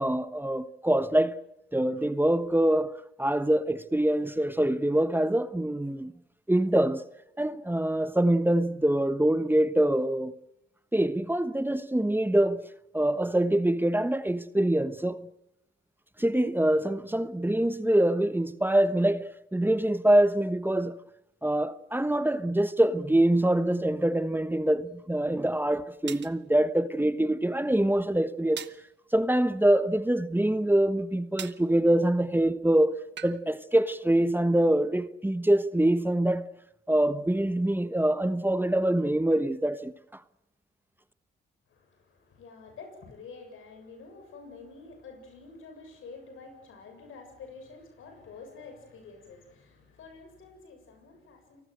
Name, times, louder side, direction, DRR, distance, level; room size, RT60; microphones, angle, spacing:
voice 1, 0.0-1.4 1.7-2.9 3.2-6.1 6.5-7.0 7.4-10.3 10.9-12.6 12.9-15.2 16.2-21.0 21.4-28.6 29.1-36.4 36.9-39.9, right 1 dB, 10° right, 1.2 m, -25 dB
sound 1, 25.0-25.1 26.1-26.4 28.6-28.9 31.4-31.7 33.2-33.4, right 9 dB, 60° right, 0.9 m, -40 dB
voice 2, 41.7-51.6, left 4 dB, 85° left, 7.3 m, -48 dB
29.5 x 19.5 x 7.8 m
cardioid pair, 60°, 20 cm